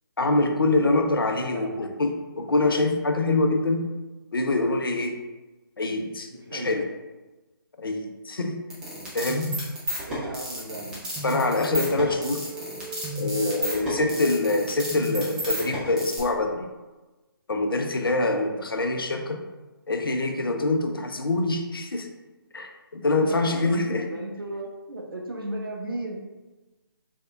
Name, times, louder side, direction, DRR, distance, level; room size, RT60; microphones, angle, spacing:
voice 1, 0.2-3.8 4.3-5.1 5.8-6.8 7.8-8.6 9.1-9.6 11.2-12.5 13.1-16.7 17.5-19.4 19.9-22.1 22.5-24.0, left 2 dB, 70° left, 5 dB, 0.5 m, -25 dB
voice 2, 1.4-1.9 6.3-6.7 10.1-11.0 23.2-26.2, right 1 dB, 65° right, 0 dB, 0.6 m, -35 dB
sound 1, 8.7-16.2, equal, 5° right, 0.5 m, -32 dB
sound 2, 11.7-14.9, right 1 dB, 25° right, 1.3 m, -38 dB
3.5 x 3.2 x 2.4 m, 1.1 s
figure-of-eight pair, 145°, 12 cm